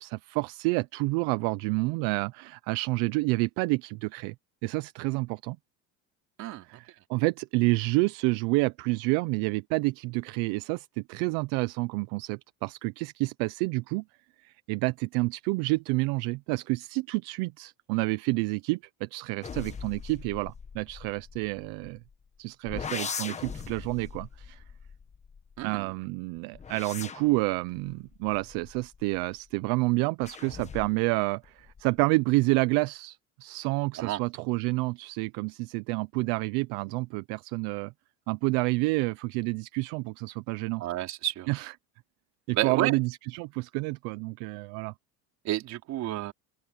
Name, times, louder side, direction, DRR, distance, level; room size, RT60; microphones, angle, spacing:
voice 1, 0.0-4.3 4.6-5.6 6.7-14.0 14.4-22.0 22.4-24.6 25.6-37.9 38.3-40.8 41.5-41.7 42.5-44.9, right 25 dB, 65° right, 0.7 m, -29 dB
voice 2, 6.4-6.8 25.6-25.9 34.0-34.2 40.8-41.5 42.5-43.0 45.4-46.3, right 14 dB, 45° right, 3.8 m, -30 dB
sound 1, 19.4-22.1 22.7-25.8 26.4-29.4 30.2-31.1 31.4-32.0, left 6 dB, 20° left, 1.4 m, -41 dB
cardioid pair, 150°, 37 cm